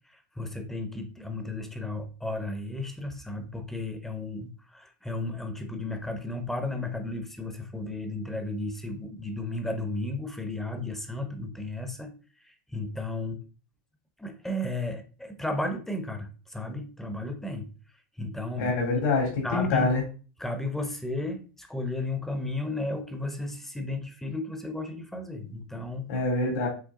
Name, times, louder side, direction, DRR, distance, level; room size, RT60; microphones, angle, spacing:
voice 1, 0.1-12.1 12.4-13.4 14.2-17.7 18.2-18.7 19.4-19.9 20.4-26.1, left 2 dB, 5° left, 6 dB, 0.8 m, -34 dB
voice 2, 18.6-20.0 26.1-26.7, left 3 dB, 75° left, -1 dB, 2.9 m, -25 dB
8.2 x 3.2 x 3.7 m, 0.36 s
supercardioid pair, 145°, 10 cm